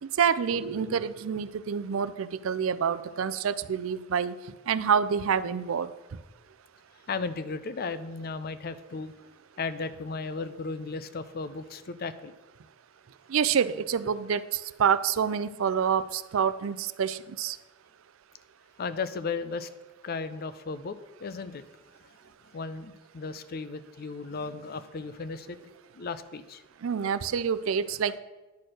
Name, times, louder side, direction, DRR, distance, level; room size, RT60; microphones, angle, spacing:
voice 1, 0.0-4.4 4.7-5.9 13.3-17.6 26.8-28.2, right 7 dB, 85° right, 14 dB, 0.4 m, -27 dB
voice 2, 7.1-9.1 9.6-12.3 18.8-19.7 20.0-21.6 22.0-22.1 22.5-25.6 25.9-26.6, left 4 dB, 50° left, 12 dB, 0.5 m, -35 dB
10.5 x 4.4 x 6.4 m, 1.1 s
head